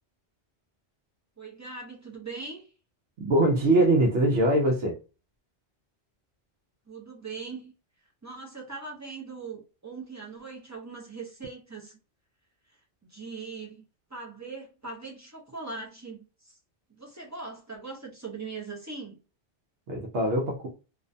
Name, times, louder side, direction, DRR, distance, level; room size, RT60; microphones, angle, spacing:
voice 1, 1.4-2.7 6.9-7.7 8.2-12.0 12.7-13.8 14.1-16.6 16.9-19.2, right 4 dB, 25° right, 0.4 m, -40 dB
voice 2, 3.2-4.9 19.9-20.7, right 1 dB, 80° right, 0.9 m, -22 dB
2.5 x 2.1 x 2.5 m
omnidirectional pair, 1.2 m